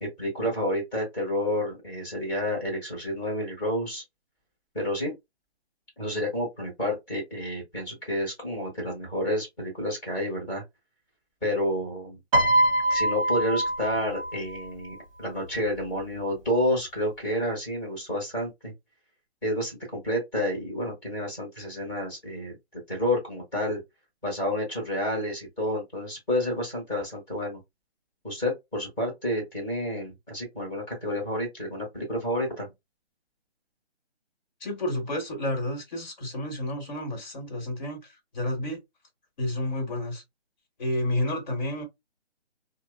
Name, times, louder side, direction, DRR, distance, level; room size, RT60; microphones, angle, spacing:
voice 1, 0.0-4.0 4.7-5.1 6.0-10.6 11.4-12.2 12.9-18.7 19.4-22.5 22.9-23.8 24.2-27.6 28.2-32.7, left 1 dB, 10° left, 1.2 m, -29 dB
Piano, 12.3-14.7 15.7-16.0, right 1 dB, 30° right, 0.8 m, -24 dB
voice 2, 34.6-38.8 39.4-40.2 40.8-41.8, left 1 dB, 40° left, 1.4 m, -30 dB
2.8 x 2.1 x 2.3 m
hypercardioid pair, 165°, 33 cm